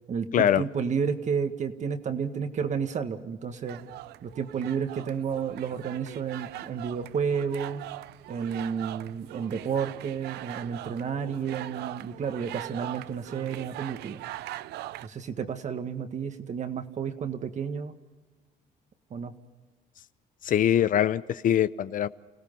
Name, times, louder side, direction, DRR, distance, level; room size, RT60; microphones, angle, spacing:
voice 1, 0.1-3.8 4.2-7.9 8.3-14.2 15.0-17.9 19.1-19.3, right 6 dB, 45° right, 8 dB, 1.7 m, -31 dB
sound 1, 3.7-15.1, right 15 dB, 80° right, 0.5 m, -41 dB
voice 2, 20.4-22.1, left 10 dB, 50° left, 15 dB, 0.7 m, -23 dB
29.5 x 17.0 x 5.5 m, 1.3 s
cardioid pair, 110°, 17 cm